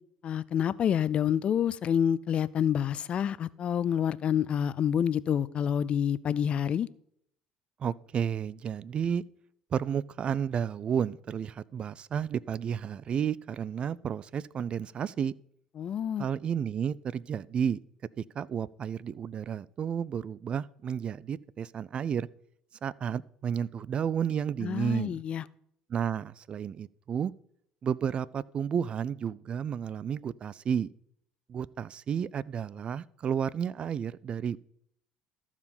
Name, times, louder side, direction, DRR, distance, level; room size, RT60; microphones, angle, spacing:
voice 1, 0.2-6.9 15.8-16.3 24.6-25.4, left 9 dB, 50° left, 0.4 m, -28 dB
voice 2, 7.8-9.2 9.7-15.3 16.2-17.8 18.2-22.3 22.8-25.2 25.9-27.3 27.8-30.9 31.5-34.6, right 8 dB, 45° right, 0.3 m, -32 dB
14.0 x 4.9 x 5.5 m
supercardioid pair, 80°, 3 cm